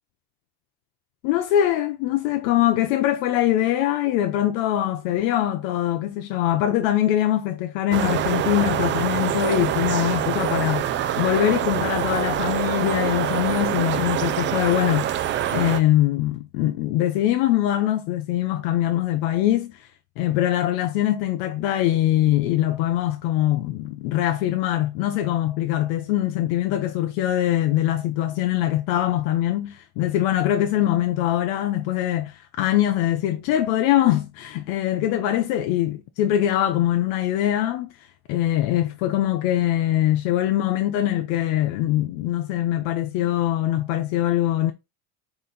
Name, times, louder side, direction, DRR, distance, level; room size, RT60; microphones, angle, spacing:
voice 1, 1.2-10.9 11.2-15.1 15.5-19.8 20.2-37.9 38.3-44.7, left 13 dB, 80° left, 0.7 m, -22 dB
sound 1, 7.9-15.8, right 11 dB, 30° right, 0.4 m, -25 dB
4.0 x 2.5 x 3.9 m
cardioid pair, 130°, 38 cm